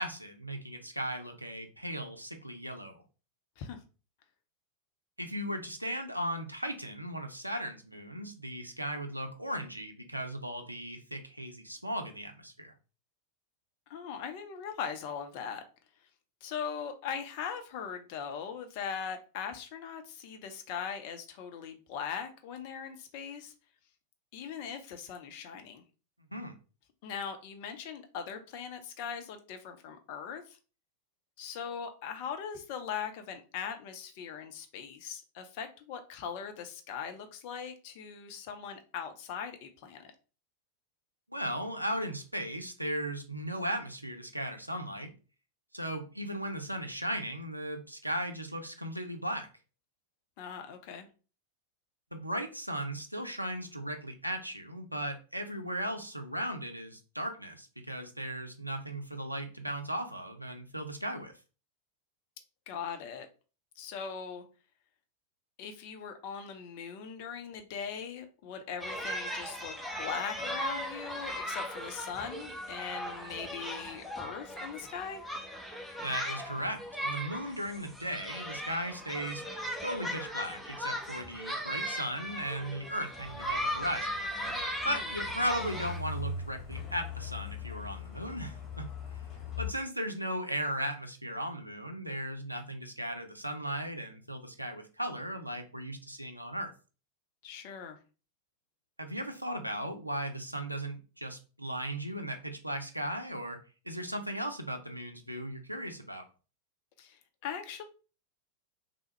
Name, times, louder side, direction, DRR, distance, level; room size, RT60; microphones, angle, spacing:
voice 1, 0.0-3.0 5.2-12.7 26.3-26.5 41.3-45.1 45.7-49.5 52.1-61.3 76.0-79.4 79.8-84.2 84.8-88.9 89.6-96.7 99.0-103.6 103.9-106.3, equal, 90° right, 0.5 m, -37 dB
voice 2, 13.9-15.6 16.4-23.5 24.3-25.8 27.0-30.6 31.4-40.1 50.4-51.1 62.7-63.3 63.8-64.4 65.6-75.2 84.8-85.1 97.4-98.0 107.0-107.8, left 7 dB, 45° left, 0.5 m, -40 dB
sound 1, 68.8-86.0, equal, ahead, 0.6 m, -38 dB
Truck, 83.2-89.7, left 4 dB, 25° left, 1.1 m, -41 dB
3.4 x 2.0 x 3.0 m
figure-of-eight pair, 90°, 0 cm